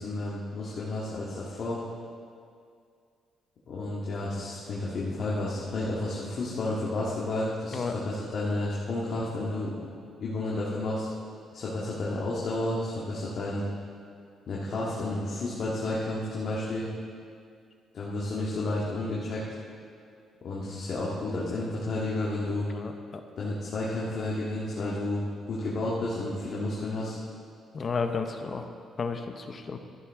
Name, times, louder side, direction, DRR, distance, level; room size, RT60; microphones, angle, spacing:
voice 1, 0.0-1.8 3.7-9.9 10.2-11.1 11.5-13.6 14.5-16.9 17.9-19.4 20.4-22.7 23.4-27.2, left 2 dB, 60° left, -6 dB, 1.9 m, -31 dB
voice 2, 22.7-23.2 27.7-28.7 29.0-29.8, left 4 dB, 40° left, 6 dB, 0.9 m, -32 dB
13.0 x 11.0 x 3.7 m, 2.3 s
cardioid pair, 90°, 0 cm